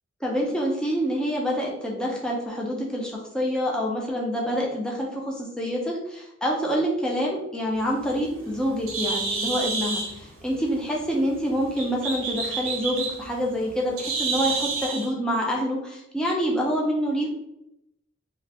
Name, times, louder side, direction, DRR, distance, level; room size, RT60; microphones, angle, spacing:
voice 1, 0.2-17.3, equal, 5° left, -3 dB, 0.5 m, -27 dB
Bird, 7.8-15.1, right 4 dB, 75° right, 0.6 m, -30 dB
2.8 x 2.4 x 3.3 m, 0.83 s
head